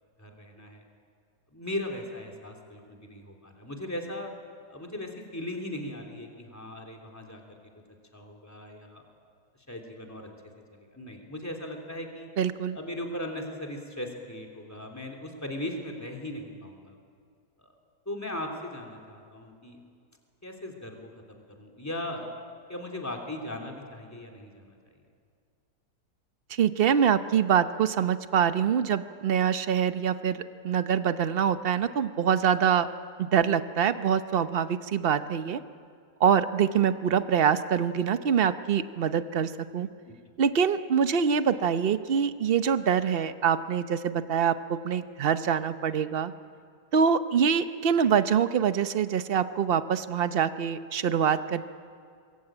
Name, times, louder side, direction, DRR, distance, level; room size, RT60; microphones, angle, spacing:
voice 1, 0.2-0.8 1.5-4.3 4.7-7.6 8.1-9.0 9.7-10.3 10.7-12.3 12.7-17.0 17.6-17.7 18.0-19.8 20.4-21.0 21.3-22.3 22.7-25.0 40.0-40.2, left 1 dB, 10° left, 1 dB, 3.1 m, -38 dB
voice 2, 12.4-12.8 26.5-32.9 33.2-35.6 36.2-39.9 40.4-46.3 46.9-51.6, right 7 dB, 45° right, 11 dB, 0.9 m, -25 dB
25.5 x 21.5 x 8.9 m, 2.2 s
omnidirectional pair, 1.7 m